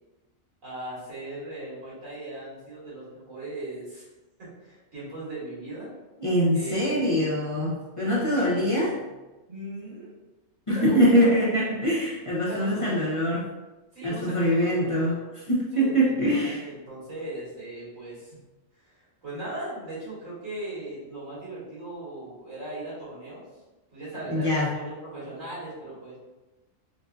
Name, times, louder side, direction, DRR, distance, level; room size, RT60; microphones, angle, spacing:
voice 1, 0.6-4.0 4.4-5.9 6.5-7.3 8.0-9.1 9.5-10.1 10.7-11.3 12.5-13.0 13.9-15.2 15.7-18.4 18.8-23.4 23.9-26.2, right 1 dB, 85° right, -9 dB, 2.2 m, -38 dB
voice 2, 6.2-8.9 10.7-13.5 14.0-16.6 24.3-24.7, equal, 35° left, -7 dB, 0.5 m, -23 dB
4.5 x 2.5 x 2.4 m, 1.1 s
omnidirectional pair, 1.3 m